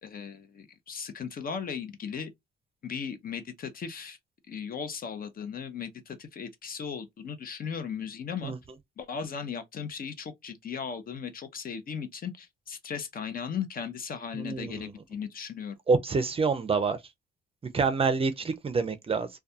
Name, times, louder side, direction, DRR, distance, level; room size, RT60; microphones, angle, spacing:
voice 1, 0.0-2.3 2.8-4.2 4.5-8.5 9.0-15.7, left 7 dB, 45° left, 0.6 m, -37 dB
voice 2, 14.4-14.8 15.9-17.0 17.7-19.3, right 4 dB, 30° right, 0.4 m, -26 dB
2.3 x 2.2 x 2.7 m
cardioid pair, 90°, 20 cm